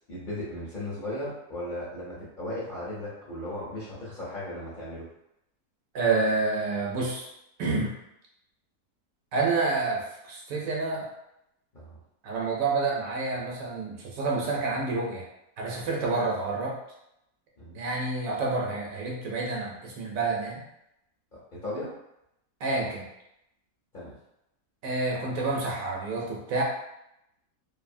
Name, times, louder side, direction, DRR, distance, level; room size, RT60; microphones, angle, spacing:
voice 1, 0.1-5.1 11.7-12.0 17.6-17.8 21.5-21.9 23.9-24.1, left 1 dB, 45° left, -9 dB, 0.7 m, -36 dB
voice 2, 5.9-7.3 7.6-7.9 9.3-11.1 12.2-15.3 15.6-16.7 17.7-20.6 22.6-23.1 24.8-26.6, right 3 dB, 70° right, -3 dB, 1.0 m, -28 dB
2.6 x 2.6 x 2.5 m, 0.84 s
omnidirectional pair, 1.6 m